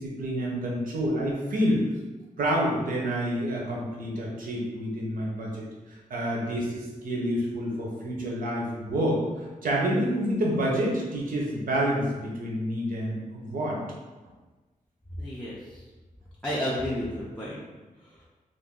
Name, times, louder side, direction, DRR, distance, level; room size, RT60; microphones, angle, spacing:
voice 1, 0.0-1.8 2.4-13.8, equal, 75° right, -3 dB, 0.9 m, -28 dB
voice 2, 15.2-15.8 16.4-17.6 18.0-18.2, equal, 5° left, -8 dB, 0.5 m, -32 dB
2.6 x 2.5 x 3.7 m, 1.2 s
wide cardioid pair, 155°, 14 cm